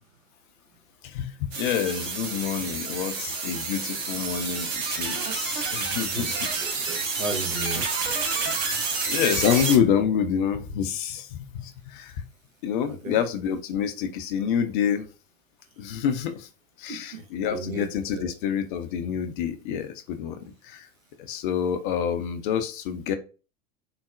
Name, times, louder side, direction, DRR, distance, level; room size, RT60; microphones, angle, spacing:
voice 1, 1.0-6.5 8.7-12.2 12.6-15.1 15.8-16.5 16.8-20.9 21.2-23.1, left 8 dB, 40° left, 9 dB, 0.5 m, -27 dB
sound 1, 1.5-9.8, right 4 dB, 50° right, 0.9 m, -29 dB
voice 2, 6.6-7.8 13.0-13.2 16.9-17.9 18.1-18.3, right 2 dB, 75° right, 4 dB, 0.8 m, -35 dB
3.9 x 2.0 x 2.4 m, 0.33 s
figure-of-eight pair, 85°, 39 cm